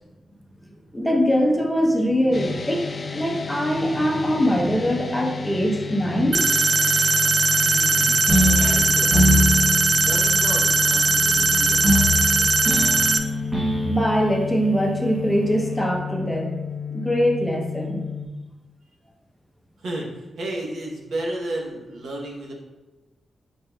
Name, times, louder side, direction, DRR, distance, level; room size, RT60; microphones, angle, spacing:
voice 1, 0.9-6.4 13.8-16.6 16.9-18.0, equal, 5° left, 0 dB, 0.7 m, -22 dB
sound 1, 2.3-18.3, left 6 dB, 45° left, 0.4 m, -31 dB
sound 2, 6.3-13.2, right 3 dB, 40° right, 0.3 m, -19 dB
voice 2, 7.6-9.6 10.0-13.0 19.8-20.1 20.4-22.5, right 1 dB, 80° right, -1 dB, 0.9 m, -34 dB
sound 3, 8.3-15.8, equal, 20° right, 1.3 m, -24 dB
5.1 x 4.1 x 2.3 m, 1.1 s
cardioid pair, 95°, 0 cm